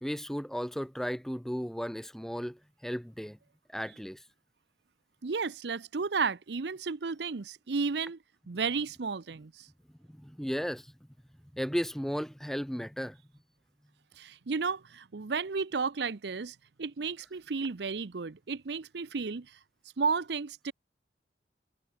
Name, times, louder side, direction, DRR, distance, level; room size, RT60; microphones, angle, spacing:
voice 1, 0.0-3.4 3.7-4.2 10.1-10.9 11.5-13.2, equal, ahead, 1.3 m, -35 dB
voice 2, 5.2-8.2 8.5-9.7 14.2-19.6 20.0-20.7, right 5 dB, 70° right, 0.7 m, -33 dB
head